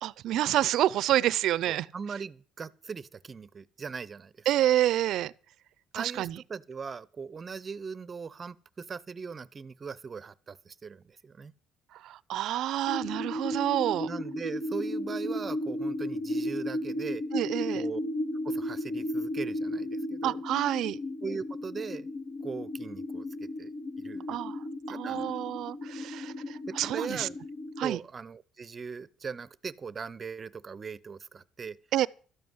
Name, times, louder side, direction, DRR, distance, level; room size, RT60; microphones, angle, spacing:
voice 1, 0.0-1.9 4.5-5.3 5.9-6.4 12.0-14.1 17.3-17.8 20.2-21.0 24.3-24.6 24.9-27.3 27.8-28.0 31.9-32.1, right 13 dB, 70° right, 0.6 m, -28 dB
voice 2, 1.6-4.7 5.9-11.5 14.1-17.2 17.7-18.0 18.4-20.4 21.2-22.1 22.4-23.7 24.0-24.4 24.9-25.4 26.7-27.4 27.8-31.8, right 5 dB, 30° right, 0.7 m, -40 dB
sound 1, 12.9-27.9, left 1 dB, 60° left, 2.0 m, -34 dB
13.0 x 7.2 x 9.6 m
cardioid pair, 105°, 0 cm